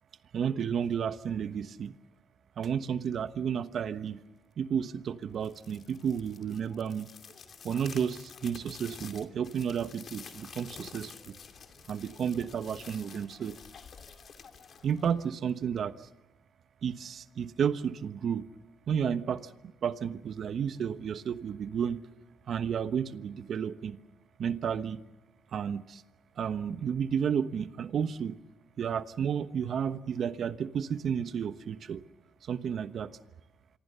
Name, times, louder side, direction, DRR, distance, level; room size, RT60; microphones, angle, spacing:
voice 1, 0.3-1.9 2.6-4.2 4.6-7.1 7.6-11.3 11.9-13.6 14.8-15.9 16.8-18.5 18.9-19.5 19.8-22.0 22.5-24.0 24.4-25.0 25.5-26.0 26.4-28.4 28.8-32.0 32.5-33.1, right 7 dB, 60° right, 12 dB, 1.1 m, -32 dB
sound 1, 5.3-15.6, left 6 dB, 55° left, 2.6 m, -50 dB
26.5 x 23.5 x 6.9 m, 1.1 s
cardioid pair, 90°, 0 cm